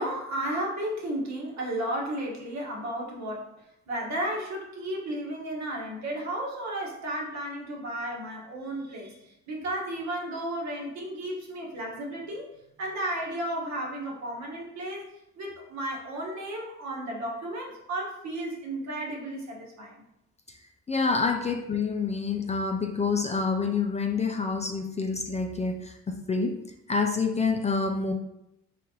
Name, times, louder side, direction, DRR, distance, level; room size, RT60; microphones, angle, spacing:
voice 1, 0.0-3.5 3.9-9.2 9.5-12.5 12.8-15.1 15.4-19.9 21.3-21.4, right 1 dB, 65° right, -2 dB, 1.3 m, -33 dB
voice 2, 20.9-26.6 26.9-28.1, left 4 dB, 25° left, 4 dB, 0.4 m, -27 dB
4.1 x 3.7 x 2.8 m, 0.84 s
cardioid pair, 90°, 30 cm